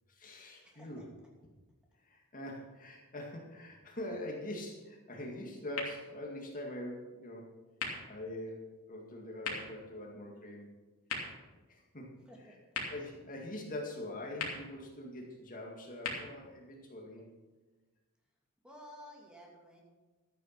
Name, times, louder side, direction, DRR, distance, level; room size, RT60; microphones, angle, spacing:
voice 1, 0.1-1.0 2.0-7.5 8.1-10.7 11.7-12.1 12.9-17.3, left 1 dB, 40° left, 0 dB, 2.1 m, -43 dB
voice 2, 0.6-1.0 12.3-12.5 18.6-19.8, equal, 5° right, -2 dB, 2.5 m, -53 dB
sound 1, 5.7-17.6, left 4 dB, 75° left, 2.9 m, -45 dB
13.5 x 9.0 x 5.9 m, 1.3 s
head